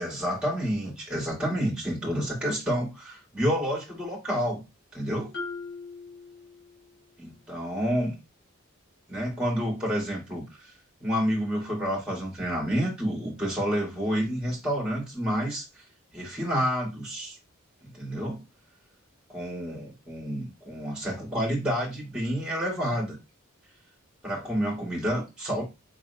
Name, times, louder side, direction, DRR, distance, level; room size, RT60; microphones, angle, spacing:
voice 1, 0.0-4.6 4.9-5.3 7.2-8.1 9.1-10.7 11.0-15.8 16.1-17.4 17.8-18.4 19.3-23.2 24.2-25.6, equal, 5° right, -1 dB, 1.9 m, -29 dB
Marimba xylophone, 5.3-7.1, left 4 dB, 80° left, 2.6 m, -40 dB
5.1 x 3.7 x 2.2 m, 0.24 s
head